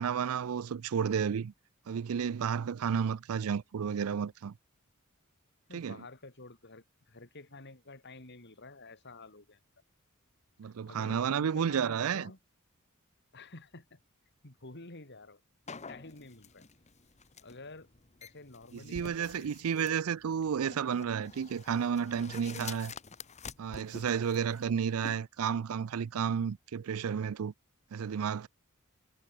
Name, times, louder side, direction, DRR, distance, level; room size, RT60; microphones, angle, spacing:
voice 1, 0.0-1.5 1.9-4.5 5.7-6.0 10.6-12.3 18.7-22.9 23.6-27.5 27.9-28.5, right 7 dB, 75° right, 0.4 m, -32 dB
voice 2, 5.7-9.6 10.6-12.4 13.3-14.0 14.4-15.4 15.9-16.7 17.4-17.9 18.2-20.0, left 2 dB, 55° left, 3.9 m, -50 dB
sound 1, 15.7-25.2, left 5 dB, 35° left, 1.3 m, -48 dB
head